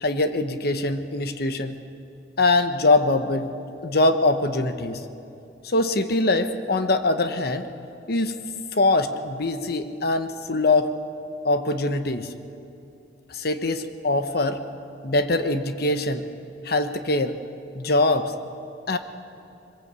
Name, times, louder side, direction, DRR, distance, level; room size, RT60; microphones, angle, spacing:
voice 1, 0.0-1.8 2.4-3.5 3.8-5.0 5.6-7.7 8.1-8.3 8.7-10.9 11.4-12.3 13.3-14.6 15.0-16.3 16.6-17.4 17.7-18.3 18.9-19.0, left 2 dB, 60° left, 9 dB, 1.1 m, -23 dB
22.5 x 20.5 x 8.3 m, 2.8 s
head